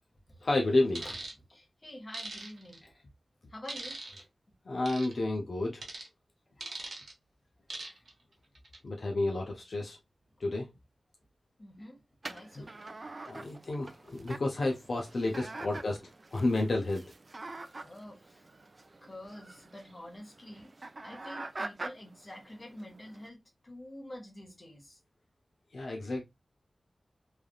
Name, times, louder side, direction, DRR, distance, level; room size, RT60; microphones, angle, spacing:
voice 1, 0.4-1.0 4.7-5.8 8.8-10.0 10.4-10.7 12.6-12.7 13.3-16.0 16.3-17.0 25.7-26.2, left 2 dB, 65° left, 0.6 m, -30 dB
sound 1, 0.9-1.3 2.1-2.8 3.7-4.2 4.9-5.1 5.8-6.1 6.6-7.1 7.7-8.1 8.5-8.8, right 3 dB, 90° right, 0.9 m, -41 dB
voice 2, 1.5-3.0 3.5-4.3 5.1-5.2 6.6-7.0 7.8-8.1 11.6-12.7 17.8-18.5 19.0-23.4 23.6-25.0, left 1 dB, 35° left, 1.1 m, -48 dB
sound 2, 12.2-23.3, right 2 dB, 40° right, 0.3 m, -46 dB
3.3 x 2.3 x 2.3 m
wide cardioid pair, 105°, 0 cm